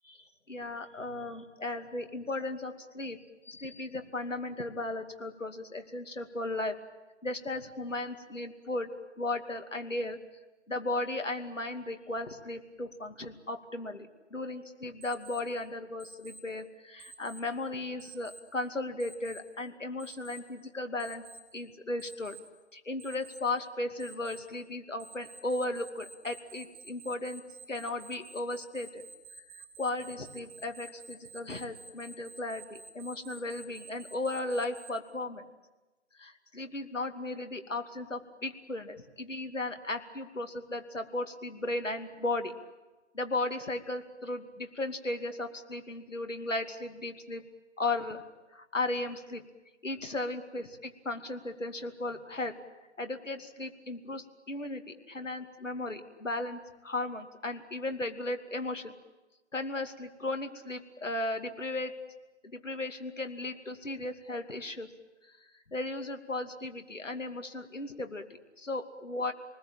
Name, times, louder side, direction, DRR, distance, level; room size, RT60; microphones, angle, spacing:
voice 1, 0.5-3.2 3.4-6.7 7.2-8.9 9.2-10.2 10.7-21.2 21.5-22.4 22.7-27.4 27.7-29.0 29.5-35.5 36.2-42.5 43.1-47.4 47.8-48.2 48.5-49.4 49.8-52.5 53.0-58.9 59.5-61.9 62.5-64.9 65.7-68.2 68.6-69.3, left 2 dB, 85° left, 7 dB, 2.6 m, -36 dB
Alarm, 15.0-15.4 16.0-16.4 17.0-17.4 18.0-18.4 19.0-19.4 20.0-20.4 21.0-21.4 22.0-22.4 23.0-23.4 24.0-24.4 25.0-34.9, right 4 dB, 5° right, 3.2 m, -50 dB
28.5 x 20.0 x 9.0 m, 1.1 s
figure-of-eight pair, 160°, 37 cm